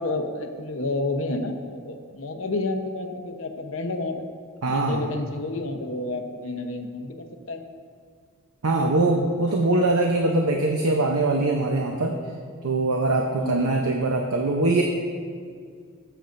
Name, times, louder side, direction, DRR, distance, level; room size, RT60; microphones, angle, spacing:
voice 1, 0.0-4.3 4.7-7.6 13.3-13.9, left 2 dB, 65° left, 5 dB, 0.9 m, -30 dB
voice 2, 4.6-5.1 8.6-12.2 12.6-14.8, right 2 dB, 90° right, 1 dB, 0.8 m, -22 dB
17.5 x 8.0 x 2.6 m, 2.1 s
head